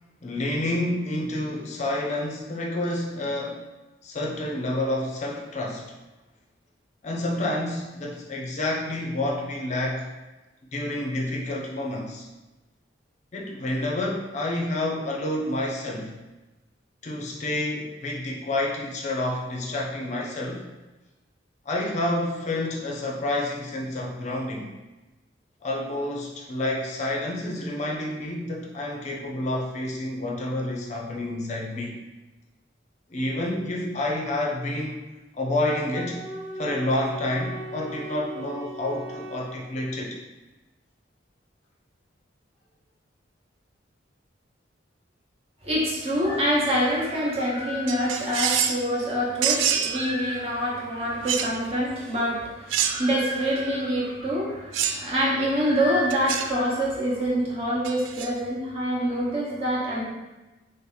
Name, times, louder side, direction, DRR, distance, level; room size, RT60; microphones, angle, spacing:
voice 1, 0.2-3.6 4.0-5.9 7.0-10.1 10.7-12.3 13.3-16.1 17.0-20.7 21.7-24.7 25.6-32.0 33.1-35.0 35.3-36.2 36.6-40.2, left 1 dB, 40° left, -2 dB, 0.5 m, -29 dB
Wind instrument woodwind instrument, 35.6-39.5, right 2 dB, 15° right, 1.2 m, -38 dB
voice 2, 45.6-60.0, equal, 30° right, -5 dB, 1.0 m, -26 dB
sound 1, 47.9-48.8 49.4-50.0 51.3-51.5 52.7-53.2 54.7-55.1 56.1-56.5 57.8-58.3, right 8 dB, 85° right, 0.3 m, -26 dB
3.2 x 2.8 x 3.9 m, 1.1 s
head